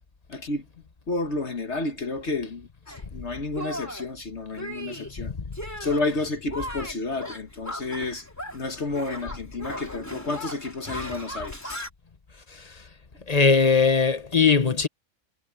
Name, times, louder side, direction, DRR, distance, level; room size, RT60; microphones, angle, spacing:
voice 1, 0.3-0.7 1.1-5.3 5.8-8.3 8.5-11.8, left 3 dB, 60° left, 1.8 m, -31 dB
Shatter, 2.9-3.1 3.6-4.1 4.6-5.1 5.5-6.1 6.5-8.7 8.9-11.9, equal, 10° left, 3.0 m, -37 dB
voice 2, 12.5-12.8 13.3-14.9, left 5 dB, 35° left, 1.0 m, -20 dB
omnidirectional pair, 1.3 m